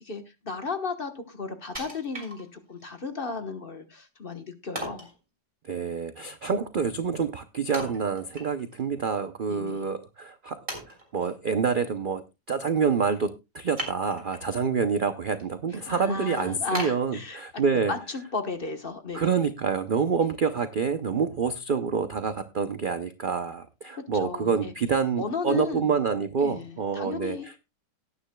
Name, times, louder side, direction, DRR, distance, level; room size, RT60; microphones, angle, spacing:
voice 1, 0.0-5.1 9.5-9.9 15.7-17.4 17.9-19.5 20.2-20.3 23.9-24.7 25.2-25.9 26.4-27.5, left 4 dB, 35° left, 7 dB, 1.2 m, -35 dB
Wood, 1.7-2.9 3.3-3.4 4.7-5.2 7.7-8.8 9.2-9.3 10.0-10.1 10.7-11.3 13.7-14.5 15.0-15.4 15.8-15.9 16.7-17.8 18.2-18.3, right 1 dB, 20° right, 4.2 m, -38 dB
voice 2, 5.6-10.6 11.1-17.9 19.1-27.5, right 6 dB, 70° right, 10 dB, 0.4 m, -27 dB
18.5 x 9.6 x 2.2 m, 0.25 s
omnidirectional pair, 1.8 m